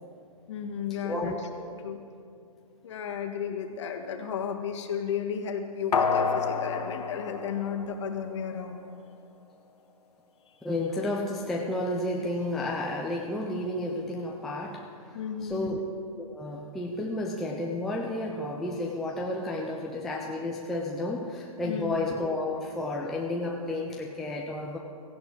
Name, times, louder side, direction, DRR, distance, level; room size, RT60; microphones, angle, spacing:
voice 1, 0.5-1.5 1.8-2.0 2.8-8.9 10.5-10.6 15.1-15.8 21.6-22.0, left 7 dB, 50° left, 4 dB, 1.6 m, -33 dB
voice 2, 1.0-1.7 10.6-15.8 16.2-24.8, left 1 dB, ahead, -2 dB, 0.3 m, -32 dB
sound 1, 5.9-8.5 8.8-8.9, left 5 dB, 80° left, 1.2 m, -29 dB
16.5 x 15.5 x 3.8 m, 2.4 s
hypercardioid pair, 150°, 20 cm